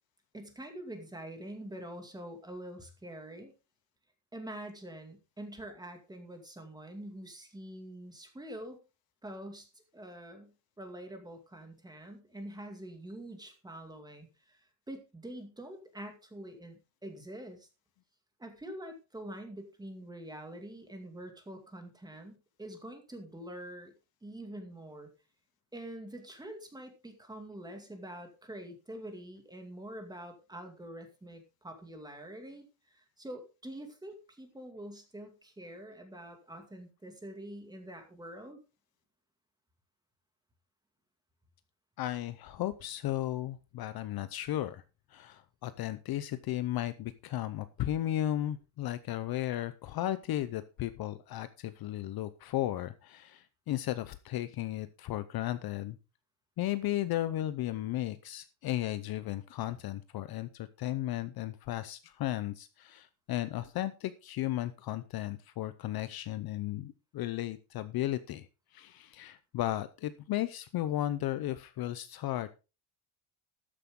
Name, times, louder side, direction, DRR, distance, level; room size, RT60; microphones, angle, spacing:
voice 1, 0.3-3.5 4.3-8.8 9.2-10.5 10.8-14.6 14.9-17.7 18.4-23.9 24.2-25.1 25.7-38.6, right 1 dB, 10° right, 5 dB, 2.2 m, -45 dB
voice 2, 42.0-44.8 45.1-56.0 56.6-72.5, left 14 dB, 45° left, 13 dB, 0.7 m, -35 dB
13.0 x 9.9 x 3.7 m, 0.30 s
cardioid pair, 160°, 50 cm